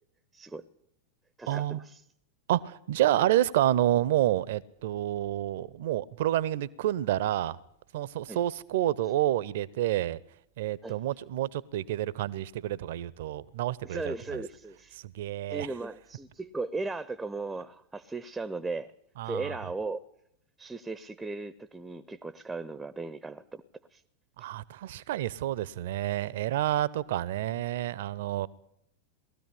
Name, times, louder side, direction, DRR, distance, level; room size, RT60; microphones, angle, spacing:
voice 1, 0.3-0.6 1.4-2.0 8.3-8.4 10.8-11.0 13.8-15.0 15.5-18.9 19.2-20.0 20.6-23.6 23.9-24.0, right 3 dB, 10° right, 0.7 m, -37 dB
voice 2, 1.5-1.8 2.5-7.6 7.9-10.2 10.6-14.4 15.0-15.7 19.2-19.6 24.4-28.5, right 13 dB, 55° right, 0.7 m, -29 dB
19.0 x 14.0 x 9.9 m
figure-of-eight pair, 90°, 0 cm